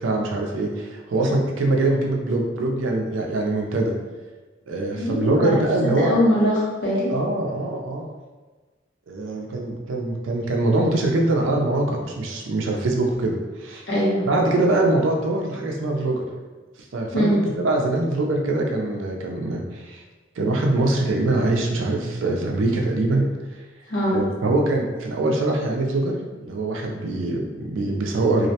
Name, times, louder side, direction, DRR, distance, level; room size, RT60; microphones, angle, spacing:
voice 1, 0.0-3.9 4.7-6.1 7.1-8.1 9.1-13.8 14.2-16.2 16.9-20.0 20.4-23.2 24.1-28.5, right 2 dB, 80° right, 1 dB, 0.4 m, -23 dB
voice 2, 4.9-5.6 5.8-7.1 13.9-14.2 17.1-17.4 23.9-24.2, equal, 70° left, -7 dB, 1.0 m, -21 dB
2.4 x 2.1 x 2.7 m, 1.3 s
head